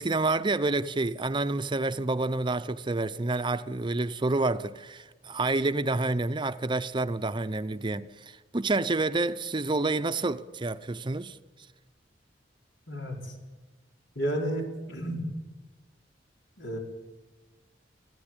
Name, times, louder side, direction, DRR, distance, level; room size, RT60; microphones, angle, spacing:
voice 1, 0.0-11.4, right 2 dB, 25° right, 0.6 m, -28 dB
voice 2, 12.9-13.3 14.1-15.2 16.6-16.8, right 1 dB, 85° left, 4.5 m, -32 dB
23.5 x 15.5 x 8.9 m
head